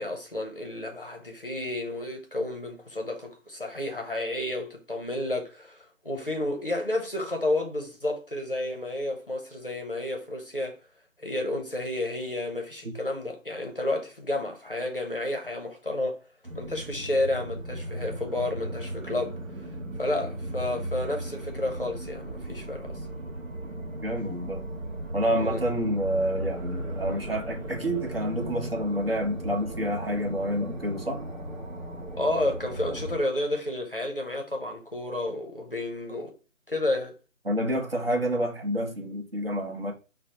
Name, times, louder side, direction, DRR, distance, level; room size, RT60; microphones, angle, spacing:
voice 1, 0.0-10.8 11.2-16.2 16.5-19.4 20.0-23.0 25.3-25.6 32.2-36.4 36.7-37.1, left 1 dB, 40° left, 0.6 m, -31 dB
sound 1, 16.4-33.2, right 1 dB, 70° right, 1.0 m, -36 dB
voice 2, 24.0-24.7 25.1-31.2 37.5-39.9, equal, 45° right, 0.8 m, -28 dB
4.8 x 2.0 x 2.7 m
figure-of-eight pair, 160°, 40 cm